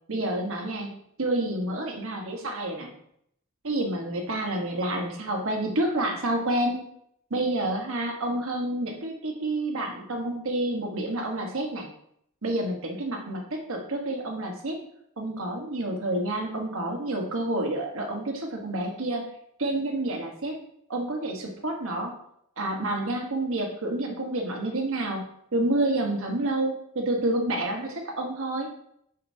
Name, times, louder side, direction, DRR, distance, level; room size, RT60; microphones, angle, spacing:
voice 1, 0.1-2.9 3.6-6.8 7.3-11.9 12.4-14.8 15.2-19.2 19.6-20.6 20.9-22.1 22.6-28.7, right 1 dB, 65° right, 1 dB, 1.4 m, -29 dB
6.5 x 5.9 x 2.8 m, 0.71 s
head